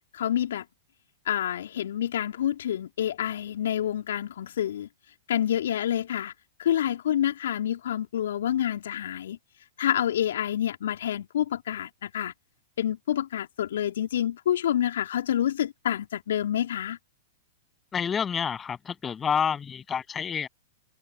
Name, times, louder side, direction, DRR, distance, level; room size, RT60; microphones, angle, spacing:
voice 1, 0.1-0.6 1.2-4.9 5.3-6.3 6.6-9.4 9.8-12.3 12.8-17.0, left 10 dB, 65° left, 3.0 m, -28 dB
voice 2, 17.9-20.5, left 7 dB, 20° left, 7.8 m, -28 dB
figure-of-eight pair, 100°, 0 cm